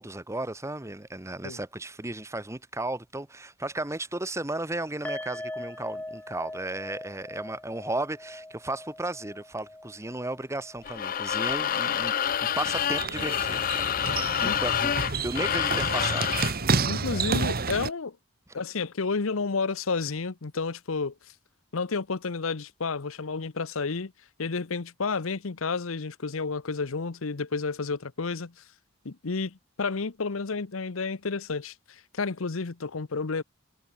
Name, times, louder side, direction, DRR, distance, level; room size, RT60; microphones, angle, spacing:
voice 1, 0.0-14.1 14.4-14.9 15.2-16.3, right 2 dB, 15° right, 1.4 m, -34 dB
sound 1, 5.0-12.3 12.5-12.7 13.1-13.2, left 1 dB, 10° left, 1.7 m, -42 dB
sound 2, 10.8-16.6, left 9 dB, 40° left, 0.5 m, -28 dB
sound 3, 12.3-17.9, right 4 dB, 45° right, 1.4 m, -30 dB
voice 2, 16.9-18.2 18.5-21.1 21.7-24.1 24.4-28.5 29.0-33.4, left 4 dB, 80° left, 0.9 m, -31 dB
head